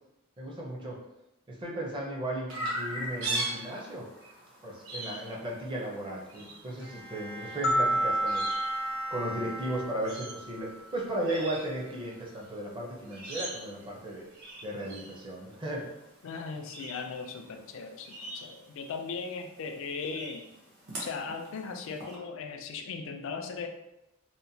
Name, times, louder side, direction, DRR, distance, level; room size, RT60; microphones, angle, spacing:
voice 1, 0.4-1.0 1.5-4.0 4.6-8.4 9.1-14.3 14.6-15.9, right 1 dB, 25° right, -3 dB, 0.5 m, -35 dB
Chirp tweet, 2.5-22.1, right 1 dB, 85° right, 0.9 m, -42 dB
Bowed string instrument, 6.8-10.4, left 1 dB, 60° right, 1.4 m, -44 dB
sound 1, 7.6-10.8, right 1 dB, 85° left, 0.8 m, -30 dB
voice 2, 16.2-20.4 21.0-23.7, left 5 dB, 70° left, 5 dB, 0.3 m, -38 dB
2.9 x 2.1 x 2.6 m, 0.88 s
head